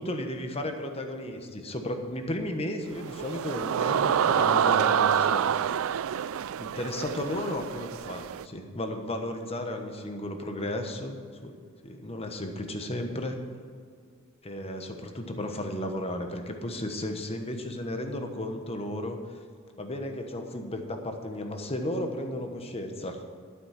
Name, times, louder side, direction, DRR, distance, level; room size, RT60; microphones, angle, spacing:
voice 1, 0.0-5.5 6.6-11.2 11.4-11.6 11.8-13.4 14.4-19.2 19.8-23.2, left 1 dB, 25° left, 5 dB, 1.2 m, -34 dB
sound 1, 2.9-8.4, right 8 dB, 65° right, 0.3 m, -27 dB
12.5 x 8.3 x 5.9 m, 2.2 s
head